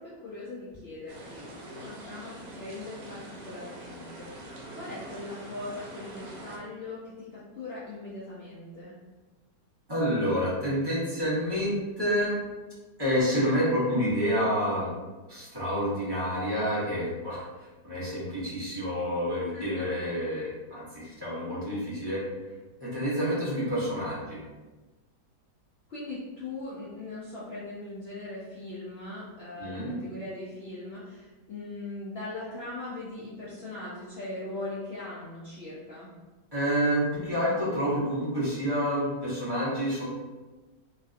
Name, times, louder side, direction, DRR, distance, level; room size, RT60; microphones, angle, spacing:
voice 1, 0.0-8.9 19.5-19.9 25.9-36.1, left 2 dB, 75° left, -9 dB, 0.5 m, -40 dB
sound 1, 1.1-6.6, right 1 dB, 75° right, 1.3 m, -44 dB
voice 2, 9.9-12.3 13.0-14.9 15.3-22.2 22.8-24.4 29.6-30.0 36.5-40.1, equal, 20° right, -9 dB, 0.8 m, -28 dB
3.1 x 2.6 x 2.4 m, 1.2 s
omnidirectional pair, 1.9 m